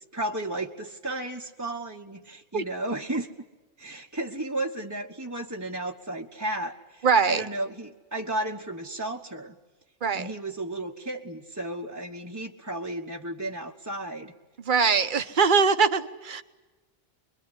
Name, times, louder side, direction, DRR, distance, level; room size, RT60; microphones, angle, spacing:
voice 1, 0.1-3.3 3.8-9.6 10.1-14.3, right 1 dB, 15° right, 1.2 m, -33 dB
voice 2, 7.0-7.4 10.0-10.3 14.7-16.4, right 5 dB, 45° right, 1.2 m, -22 dB
25.5 x 22.5 x 9.8 m
omnidirectional pair, 1.2 m